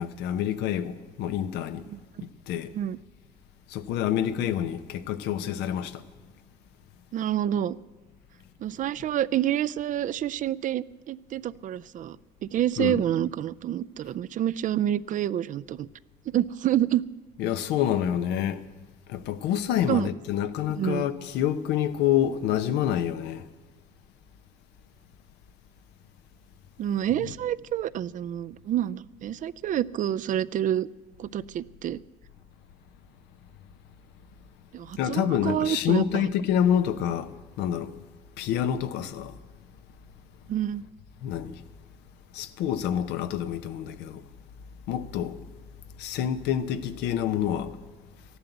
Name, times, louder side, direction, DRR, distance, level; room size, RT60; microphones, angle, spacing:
voice 1, 0.0-1.8 2.5-2.7 3.7-6.0 12.8-13.0 17.4-18.6 19.1-23.4 35.0-37.9 38.4-39.3 41.2-41.6 42.3-44.2 44.9-45.4 46.0-47.7, left 10 dB, 85° left, 0.9 m, -27 dB
voice 2, 7.1-7.8 8.6-12.2 12.4-15.9 16.3-17.0 19.9-20.1 20.8-21.1 26.8-30.9 31.2-32.0 34.7-36.3 40.5-40.8, right 11 dB, 50° right, 0.4 m, -28 dB
14.0 x 11.5 x 8.1 m
cardioid pair, 110°, 17 cm